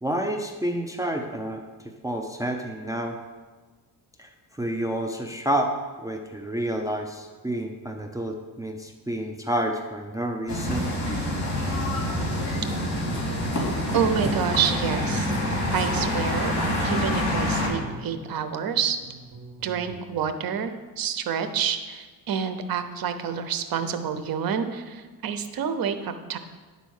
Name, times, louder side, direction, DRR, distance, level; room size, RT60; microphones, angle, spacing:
voice 1, 0.0-3.2 4.2-5.7 6.0-10.9, right 1 dB, 10° right, 3 dB, 0.5 m, -29 dB
sound 1, 10.5-17.7, left 1 dB, 45° left, 3.1 m, -26 dB
Guitar, 12.8-20.4, right 2 dB, 35° right, 2.1 m, -41 dB
voice 2, 13.9-15.3 15.7-16.5 16.8-19.0 19.6-26.4, right 7 dB, 65° right, 9 dB, 0.8 m, -28 dB
10.0 x 4.0 x 6.4 m, 1.3 s
cardioid pair, 115°, 38 cm